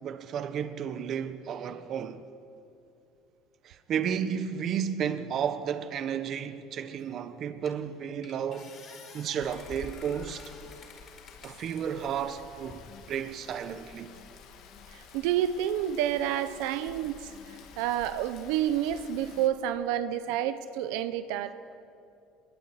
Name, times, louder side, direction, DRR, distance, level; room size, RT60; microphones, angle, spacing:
voice 1, 0.0-2.2 3.6-8.7 9.1-10.5 11.4-12.8 13.1-14.1, right 8 dB, 40° right, 1.4 m, -32 dB
sound 1, 7.0-7.1 7.7-7.9 8.2-11.8 12.4-13.0, left 4 dB, 35° left, 5.1 m, -48 dB
Rain, 9.4-19.5, left 6 dB, 55° left, 3.1 m, -51 dB
voice 2, 14.9-21.5, right 11 dB, 80° right, 1.1 m, -29 dB
26.5 x 22.5 x 9.9 m
cardioid pair, 155°, 0 cm